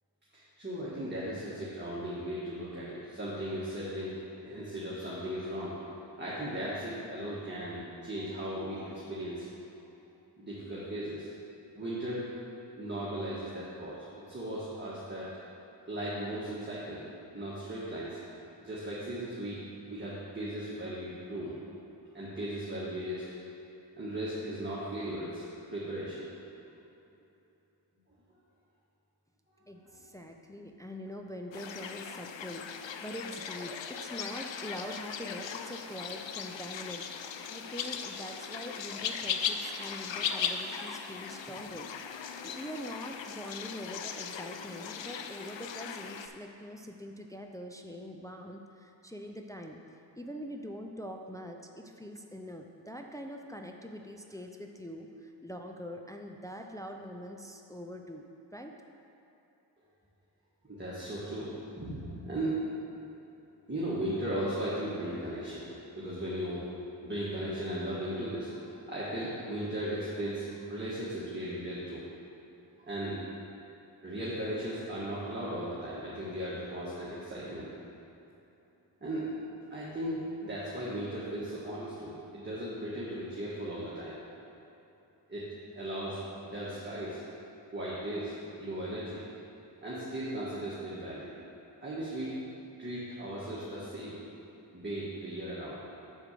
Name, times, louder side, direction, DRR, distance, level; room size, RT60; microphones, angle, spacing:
voice 1, 0.3-5.8 6.2-9.5 10.4-11.3 11.7-12.3 12.8-15.3 15.9-17.0 17.3-18.2 18.6-19.6 19.9-21.6 22.1-23.2 24.0-25.4 25.7-26.3 29.8-30.0 60.6-61.5 61.7-62.6 63.7-65.7 65.9-66.7 67.0-72.0 72.8-73.2 74.0-77.7 79.0-79.3 79.7-84.2 85.3-85.4 85.7-87.2 87.7-89.2 89.8-91.3 91.8-92.4 92.8-94.2 94.7-95.8, right 1 dB, 25° right, -9 dB, 1.7 m, -37 dB
voice 2, 29.7-37.1 37.5-49.8 50.2-58.7, equal, 10° left, 3 dB, 0.5 m, -44 dB
sound 1, 31.5-46.3, left 7 dB, 75° left, 0.6 m, -38 dB
6.3 x 4.8 x 6.7 m, 3.0 s
cardioid pair, 45°, 45 cm